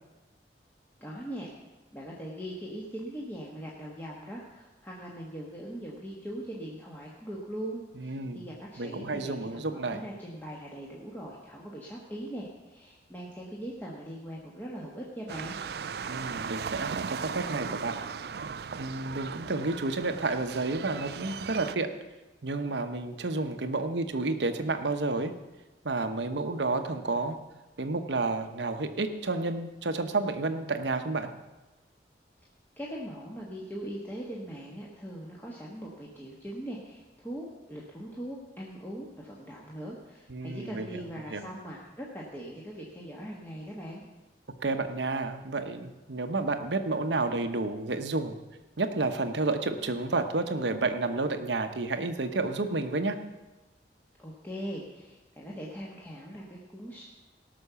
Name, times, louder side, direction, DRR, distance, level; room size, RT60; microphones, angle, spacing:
voice 1, 1.0-1.5 1.9-15.6 32.8-44.0 54.2-57.0, right 1 dB, 10° left, -4 dB, 1.4 m, -41 dB
voice 2, 8.0-8.5 8.8-10.0 16.1-18.0 18.8-21.9 22.4-25.3 25.8-27.4 27.8-31.3 40.3-41.0 41.3-41.5 44.6-48.4 48.8-53.2, right 3 dB, 85° right, 8 dB, 1.0 m, -30 dB
sound 1, 15.3-21.7, right 6 dB, 60° right, 0.4 m, -37 dB
17.5 x 6.2 x 6.9 m, 1.1 s
head